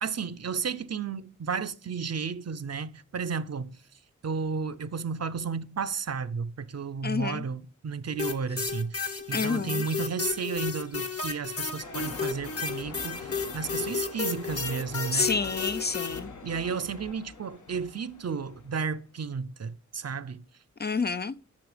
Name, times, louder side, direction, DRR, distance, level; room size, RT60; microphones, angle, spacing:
voice 1, 0.0-3.8 4.2-15.3 16.4-20.4, right 5 dB, 55° right, 0.7 m, -33 dB
voice 2, 7.0-7.4 9.3-9.8 15.1-16.3 20.8-21.3, left 4 dB, 35° left, 0.4 m, -28 dB
sound 1, 8.2-16.2, left 5 dB, 50° left, 1.5 m, -32 dB
sound 2, 11.8-18.9, left 4 dB, 75° left, 1.5 m, -44 dB
11.5 x 6.9 x 5.0 m
wide cardioid pair, 110°, 30 cm